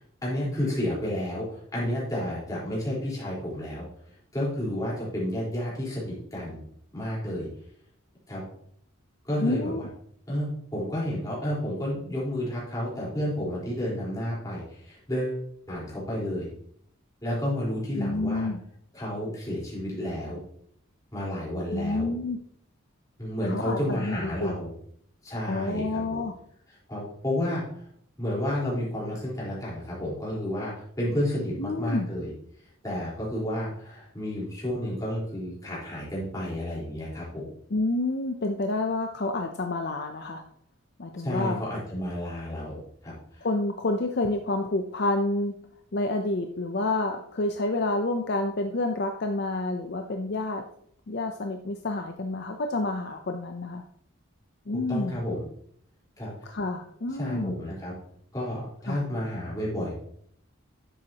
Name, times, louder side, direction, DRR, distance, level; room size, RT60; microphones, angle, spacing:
voice 1, 0.0-3.8 4.3-6.6 6.9-7.5 8.3-8.4 9.2-9.9 10.3-10.5 10.7-15.4 15.7-16.5 17.2-18.5 18.9-20.4 21.1-22.1 23.2-24.7 25.2-26.2 26.9-27.6 28.2-32.3 32.8-37.5 41.2-43.5 54.9-55.4 56.2-56.5 57.2-57.9 58.3-59.9, left 1 dB, 15° left, -7 dB, 4.2 m, -31 dB
voice 2, 9.4-9.9 18.0-18.6 21.7-22.4 23.5-24.6 25.4-26.3 31.6-32.1 37.7-40.4 41.0-41.6 43.4-45.5 45.9-50.6 51.1-53.8 54.7-55.2 56.4-57.6 58.9-59.0, left 2 dB, 50° left, 5 dB, 0.6 m, -29 dB
10.5 x 7.6 x 2.9 m, 0.65 s
head